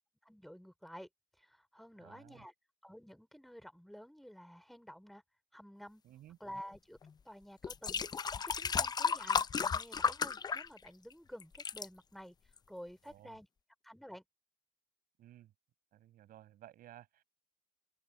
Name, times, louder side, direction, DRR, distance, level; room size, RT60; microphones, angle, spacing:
voice 1, 0.2-1.1 1.4-2.5 2.8-5.2 5.5-6.0 6.4-7.0 7.2-12.3 12.7-13.5 13.8-14.2, equal, ahead, 4.9 m, -51 dB
voice 2, 2.0-2.5 6.0-6.4 13.0-13.4 15.2-15.5 15.9-17.2, right 13 dB, 65° right, 7.9 m, -56 dB
sound 1, 7.0-7.1 7.6-11.1 11.4-11.9 12.6-12.7, left 6 dB, 25° left, 0.6 m, -34 dB
open air
cardioid pair, 115°, 16 cm